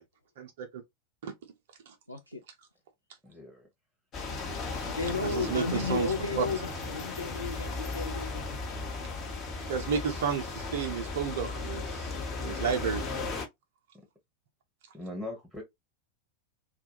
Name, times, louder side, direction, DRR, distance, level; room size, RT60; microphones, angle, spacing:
voice 1, 2.1-2.4 4.8-8.4, left 4 dB, 90° left, 0.5 m, -33 dB
voice 2, 3.2-3.7 10.1-10.4 14.9-15.6, left 1 dB, 5° right, 0.8 m, -41 dB
sound 1, 4.1-13.5, left 3 dB, 30° left, 0.8 m, -36 dB
voice 3, 5.2-6.4 9.7-12.1 12.4-13.1, right 7 dB, 55° right, 0.5 m, -32 dB
2.2 x 2.2 x 2.8 m
figure-of-eight pair, 90°, 0 cm